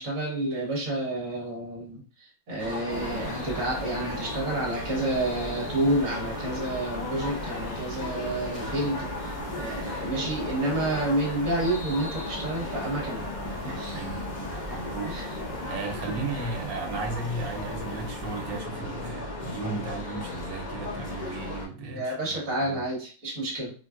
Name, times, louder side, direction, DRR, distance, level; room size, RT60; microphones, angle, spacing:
voice 1, 0.0-13.3 13.5-14.0 15.0-15.3 16.0-16.2 21.9-23.7, right 1 dB, 50° right, -4 dB, 1.3 m, -30 dB
sound 1, 2.6-21.7, left 2 dB, 65° left, 0.4 m, -36 dB
sound 2, 2.9-18.6, right 1 dB, 35° left, 1.1 m, -39 dB
voice 2, 14.7-15.2 15.7-22.8, right 3 dB, 80° right, 2 dB, 1.3 m, -35 dB
4.2 x 2.2 x 2.4 m, 0.40 s
omnidirectional pair, 2.0 m